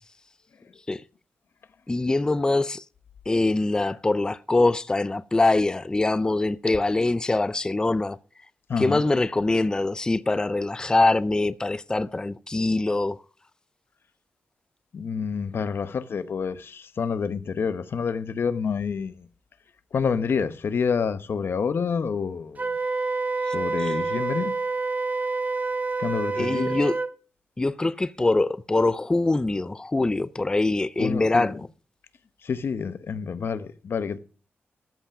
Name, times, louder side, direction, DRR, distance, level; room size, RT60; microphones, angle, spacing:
voice 1, 1.9-2.8 3.3-8.2 8.8-13.2 23.8-23.9 26.4-27.0 27.6-31.7, left 2 dB, 15° left, 0.4 m, -23 dB
voice 2, 8.7-9.1 14.9-19.3 19.9-22.7 23.5-24.6 26.0-26.7 31.0-31.6 32.4-34.2, left 6 dB, 60° left, 0.9 m, -28 dB
Wind instrument woodwind instrument, 22.6-27.1, right 3 dB, 40° right, 1.0 m, -27 dB
14.0 x 5.6 x 5.9 m
wide cardioid pair, 105°, 4 cm